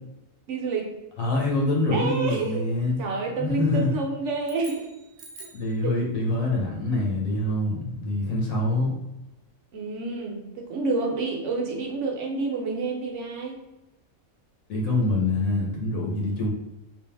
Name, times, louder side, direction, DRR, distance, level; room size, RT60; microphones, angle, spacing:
voice 1, 0.5-0.9 1.9-2.6 3.0-4.9 9.7-13.6, right 3 dB, 65° right, 0 dB, 1.0 m, -29 dB
voice 2, 1.2-3.0 3.4-3.9 5.5-8.9 14.7-16.5, left 2 dB, 75° left, -2 dB, 1.2 m, -25 dB
sound 1, 4.4-5.8, right 3 dB, 90° right, 1.1 m, -46 dB
3.5 x 2.6 x 3.3 m, 0.97 s
omnidirectional pair, 1.4 m